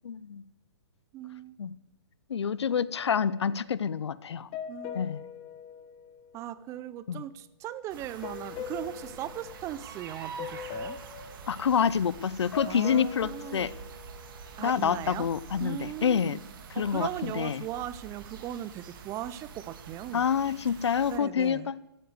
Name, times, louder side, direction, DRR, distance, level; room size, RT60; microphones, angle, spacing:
voice 1, 0.0-0.4 1.6-1.7 2.3-4.5 4.9-5.3 7.1-7.2 11.5-13.7 14.6-16.4 16.7-17.6 20.1-21.8, left 7 dB, 80° left, 0.7 m, -27 dB
voice 2, 1.1-1.5 4.7-5.0 6.3-11.0 12.7-13.7 14.6-15.3 15.6-16.4 16.7-20.2 21.1-21.7, right 12 dB, 20° right, 0.5 m, -38 dB
sound 1, 2.9-6.8 8.2-10.1 10.4-14.9, left 8 dB, 35° left, 1.8 m, -43 dB
sound 2, 7.9-21.2, right 6 dB, 50° right, 2.0 m, -46 dB
14.0 x 9.2 x 8.0 m
hypercardioid pair, 140°, 14 cm